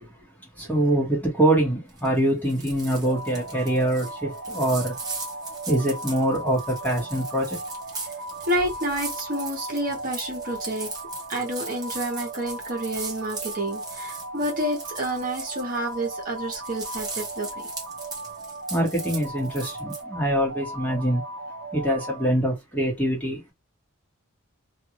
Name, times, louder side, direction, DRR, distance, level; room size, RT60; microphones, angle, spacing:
voice 1, 0.7-4.9 5.7-7.5 18.7-21.2 21.7-23.5, right 1 dB, 10° left, 1.3 m, -24 dB
sound 1, 1.9-2.2 2.4-16.1 16.4-20.0, right 3 dB, 20° right, 0.9 m, -39 dB
sound 2, 3.0-22.3, right 2 dB, 80° right, 0.6 m, -37 dB
voice 2, 8.5-10.9 11.3-17.5, right 1 dB, 40° right, 1.1 m, -29 dB
2.5 x 2.5 x 2.8 m
head